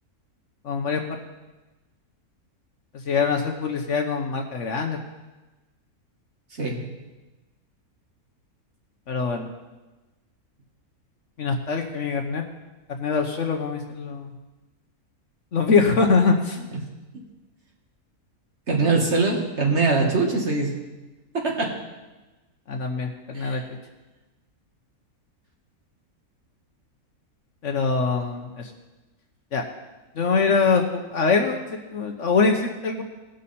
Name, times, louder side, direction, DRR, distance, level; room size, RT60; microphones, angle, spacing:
voice 1, 0.6-1.2 3.1-5.0 9.1-9.5 11.4-12.4 12.9-14.3 15.5-16.6 22.7-23.6 27.6-28.7 29.5-29.6 30.2-31.6 31.9-33.0, left 4 dB, 55° left, 3 dB, 1.1 m, -23 dB
voice 2, 18.7-20.7 21.3-21.7 23.3-23.6, right 3 dB, 45° right, -1 dB, 1.9 m, -22 dB
18.0 x 6.5 x 4.2 m, 1.1 s
omnidirectional pair, 1.6 m